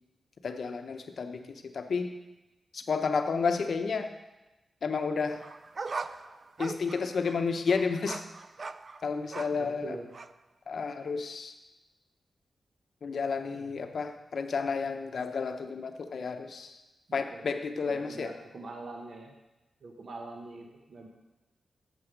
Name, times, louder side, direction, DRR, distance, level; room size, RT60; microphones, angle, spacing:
voice 1, 0.4-2.1 2.7-4.1 4.8-5.4 6.6-8.2 9.0-9.9 10.7-11.5 13.0-16.8 17.1-18.3, left 5 dB, 70° left, 7 dB, 0.8 m, -31 dB
sound 1, 5.3-9.7 10.1-10.3, right 4 dB, 50° right, 0.4 m, -40 dB
voice 2, 9.5-10.1 13.5-13.7 17.1-17.4 17.9-19.3 19.8-21.1, right 2 dB, 65° right, 2 dB, 1.2 m, -44 dB
8.8 x 7.0 x 5.1 m, 1.0 s
cardioid pair, 75°, 0 cm